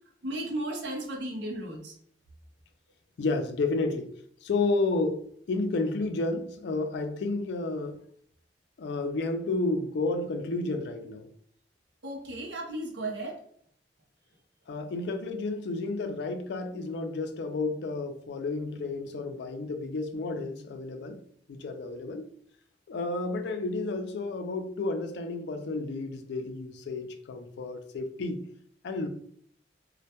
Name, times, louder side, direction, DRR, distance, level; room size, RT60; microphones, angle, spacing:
voice 1, 0.2-1.9 12.0-13.4, right 1 dB, 85° right, 0.6 m, -35 dB
voice 2, 3.2-4.1 4.4-8.0 8.8-11.3 14.7-21.2 21.5-22.3 22.9-28.5 28.8-29.1, left 3 dB, 70° left, 0.3 m, -31 dB
2.1 x 2.1 x 2.7 m
head